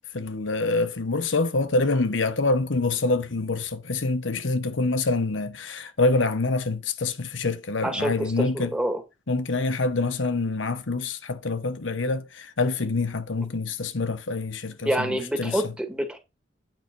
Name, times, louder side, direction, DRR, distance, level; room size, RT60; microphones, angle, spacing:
voice 1, 0.1-8.7 9.3-15.6, left 3 dB, 85° left, 1.0 m, -26 dB
voice 2, 7.8-9.0 14.8-16.2, equal, 5° right, 2.2 m, -27 dB
9.1 x 5.7 x 5.3 m
head